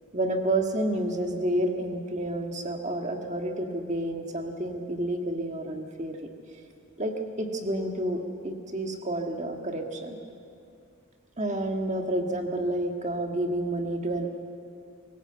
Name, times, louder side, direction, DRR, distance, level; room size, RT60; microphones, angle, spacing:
voice 1, 0.1-6.2 7.0-10.2 11.4-14.3, right 1 dB, 30° right, 3 dB, 1.7 m, -29 dB
24.0 x 16.0 x 8.0 m, 2.5 s
head